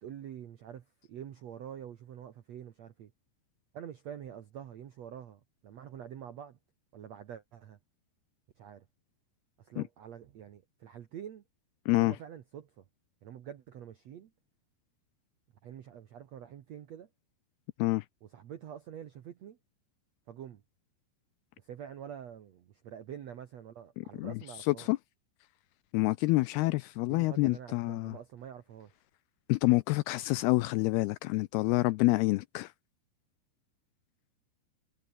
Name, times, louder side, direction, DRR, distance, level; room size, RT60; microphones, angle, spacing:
voice 1, 0.0-3.1 3.7-6.6 6.9-7.8 8.6-8.8 9.6-11.4 12.0-12.8 13.2-14.3 15.6-17.1 18.2-19.6 20.3-20.6 21.6-24.9 27.1-28.9, right 9 dB, 75° right, 1.5 m, -46 dB
voice 2, 24.7-25.0 25.9-28.1 29.5-32.7, left 21 dB, 85° left, 2.2 m, -27 dB
omnidirectional pair, 5.1 m